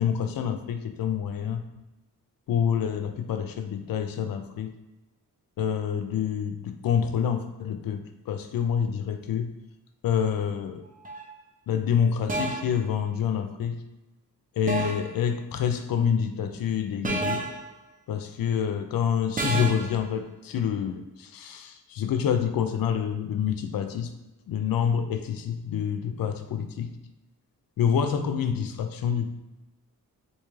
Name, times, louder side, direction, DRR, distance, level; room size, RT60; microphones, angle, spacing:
voice 1, 0.0-1.6 2.5-4.7 5.6-9.5 10.0-10.8 11.7-13.8 14.6-17.4 18.1-24.1 24.5-26.9 27.8-29.3, left 8 dB, 65° left, 8 dB, 0.5 m, -27 dB
sound 1, 11.0-11.3 12.3-12.8 14.7-15.2 17.0-17.7 19.4-20.0, right 2 dB, 25° right, 0.5 m, -30 dB
3.5 x 2.8 x 3.1 m, 1.1 s
wide cardioid pair, 110°, 37 cm